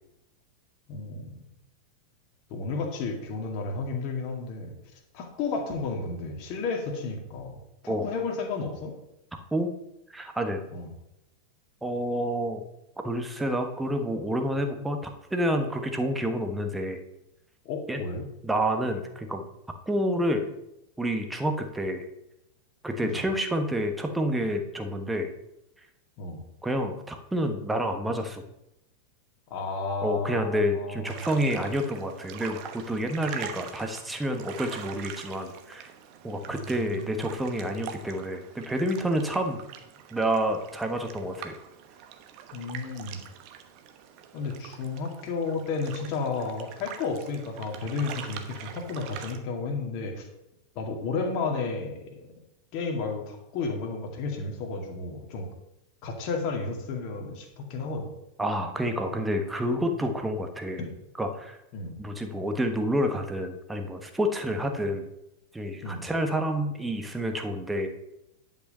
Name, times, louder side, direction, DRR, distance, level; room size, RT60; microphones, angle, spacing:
voice 1, 0.9-1.3 2.5-4.7 5.1-7.5 7.8-8.9 10.7-10.9 17.7-18.3 23.0-23.2 26.2-26.4 29.5-31.2 36.5-37.2 42.5-43.2 44.3-50.3 50.8-52.2 52.7-55.5 56.0-58.1 60.8-60.9 61.7-62.0 65.8-66.0, left 4 dB, 40° left, 2 dB, 2.2 m, -32 dB
voice 2, 10.1-10.6 11.8-12.6 13.0-15.0 15.3-17.0 17.9-18.0 18.4-19.4 19.9-20.5 21.0-22.0 22.8-25.3 26.6-28.4 30.0-35.9 36.2-39.6 40.1-41.6 58.4-60.8 61.2-61.6 62.0-65.1 65.5-67.9, equal, 5° right, 5 dB, 1.3 m, -28 dB
sound 1, 31.0-49.4, right 9 dB, 40° right, 1.1 m, -44 dB
10.5 x 5.7 x 5.5 m, 0.86 s
figure-of-eight pair, 90°, 0 cm